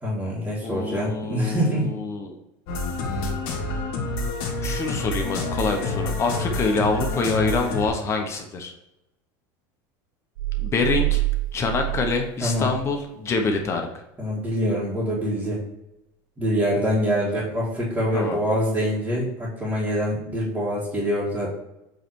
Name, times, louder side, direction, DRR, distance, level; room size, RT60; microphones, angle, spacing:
voice 1, 0.0-1.9 12.4-12.7 14.2-15.6 16.4-21.5, equal, 15° right, -10 dB, 1.9 m, -25 dB
voice 2, 0.6-2.3 4.6-8.7 10.6-11.2 11.5-13.9 18.1-18.4, left 3 dB, 25° left, 3 dB, 0.9 m, -26 dB
sound 1, 2.7-7.9, left 2 dB, 55° left, 1.8 m, -28 dB
sound 2, 10.4-13.1, right 21 dB, 85° right, 0.5 m, -27 dB
7.7 x 3.3 x 4.5 m, 0.88 s
supercardioid pair, 145°, 11 cm